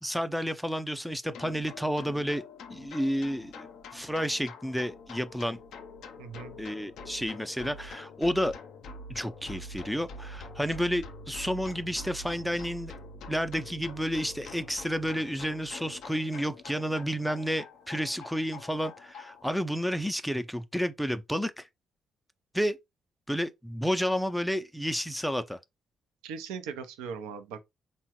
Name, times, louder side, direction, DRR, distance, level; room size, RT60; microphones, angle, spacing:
voice 1, 0.0-2.4 2.7-5.6 6.6-8.6 9.1-12.9 13.3-21.7 22.5-22.8 23.3-25.6, equal, ahead, 0.4 m, -31 dB
sound 1, 1.2-19.5, left 2 dB, 70° left, 0.5 m, -45 dB
voice 2, 6.2-6.5 26.2-27.6, right 6 dB, 80° right, 0.5 m, -39 dB
3.6 x 2.1 x 2.9 m
hypercardioid pair, 45°, 0 cm